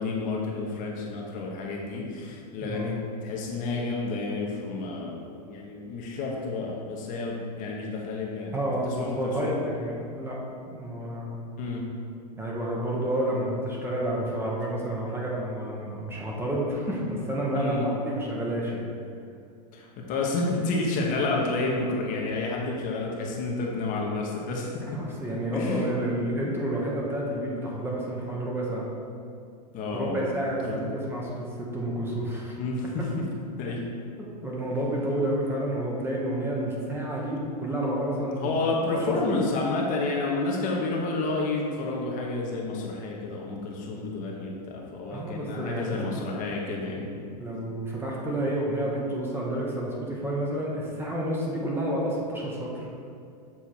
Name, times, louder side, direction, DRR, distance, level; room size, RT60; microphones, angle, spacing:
voice 1, 0.0-8.5 9.0-9.5 11.6-11.9 17.5-17.9 19.7-24.8 25.5-25.8 29.7-30.3 30.6-30.8 32.6-33.1 33.6-33.8 38.4-47.1, left 3 dB, 40° left, -2 dB, 1.1 m, -30 dB
voice 2, 8.5-10.4 10.7-11.4 12.4-18.9 24.8-28.9 29.9-32.6 34.2-38.5 38.9-39.1 45.1-46.2 47.4-52.9, right 1 dB, 10° right, -4 dB, 1.1 m, -30 dB
7.1 x 3.5 x 4.5 m, 2.4 s
hypercardioid pair, 115°, 21 cm